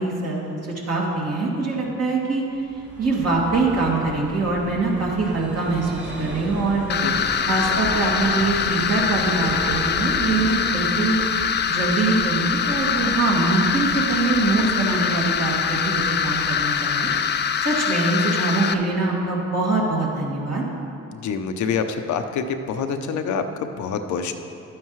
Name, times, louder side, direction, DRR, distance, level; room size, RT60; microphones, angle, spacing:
voice 1, 0.0-2.4 3.0-7.0 7.4-11.2 11.7-20.6, right 3 dB, 55° right, -4 dB, 2.4 m, -23 dB
Vehicle, 2.5-18.0, right 1 dB, 35° right, 2.3 m, -37 dB
sound 1, 6.9-18.7, left 7 dB, 35° left, 0.4 m, -23 dB
voice 2, 21.1-24.3, left 6 dB, 75° left, 7 dB, 0.7 m, -26 dB
12.0 x 9.3 x 3.2 m, 2.7 s
cardioid pair, 90°, 30 cm